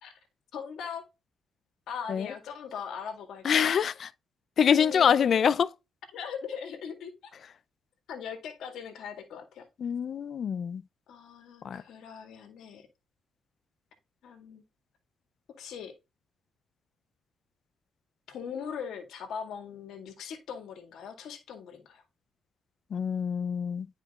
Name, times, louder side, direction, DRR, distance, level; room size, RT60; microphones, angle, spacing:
voice 1, 0.5-1.1 1.9-3.9 4.7-5.4 6.1-7.1 8.1-9.7 11.1-12.9 14.2-14.6 15.6-15.9 18.3-22.0, left 7 dB, 75° left, 2.0 m, -40 dB
voice 2, 3.4-4.1 4.6-5.7 9.8-10.8 11.6-11.8 22.9-23.9, left 7 dB, 55° left, 0.5 m, -25 dB
9.5 x 5.0 x 2.4 m
cardioid pair, 90°, 0 cm